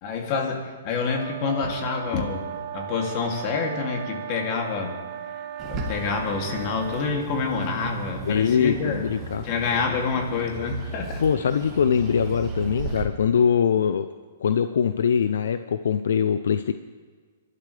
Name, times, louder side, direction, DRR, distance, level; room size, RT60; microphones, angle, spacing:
voice 1, 0.0-2.4 2.7-5.0 5.6-9.0 9.4-11.2, left 5 dB, 35° left, 1 dB, 2.7 m, -27 dB
sound 1, 1.0-7.3, right 9 dB, 40° right, 1.7 m, -36 dB
Bird, 5.6-13.0, right 4 dB, 25° right, 2.2 m, -35 dB
voice 2, 8.2-9.4 11.2-14.1 14.4-16.7, left 7 dB, 75° left, 11 dB, 0.6 m, -22 dB
27.5 x 12.5 x 3.4 m, 1.5 s
hypercardioid pair, 150°, 0 cm